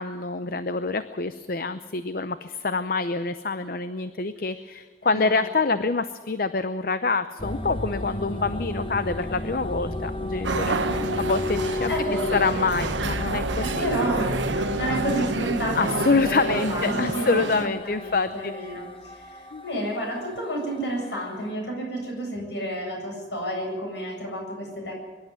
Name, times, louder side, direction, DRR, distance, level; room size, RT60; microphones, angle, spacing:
voice 1, 0.0-12.0 12.3-13.9 15.7-18.5 19.5-19.6, left 4 dB, 50° left, 11 dB, 0.7 m, -26 dB
voice 2, 5.0-5.4 5.7-5.8 11.9-12.4 13.6-25.0, right 1 dB, 65° left, 0 dB, 7.9 m, -31 dB
sound 1, 7.4-21.5, left 1 dB, 30° left, 1.1 m, -34 dB
sound 2, 10.4-17.7, right 3 dB, 85° right, 1.2 m, -28 dB
23.5 x 11.5 x 9.6 m, 1.4 s
head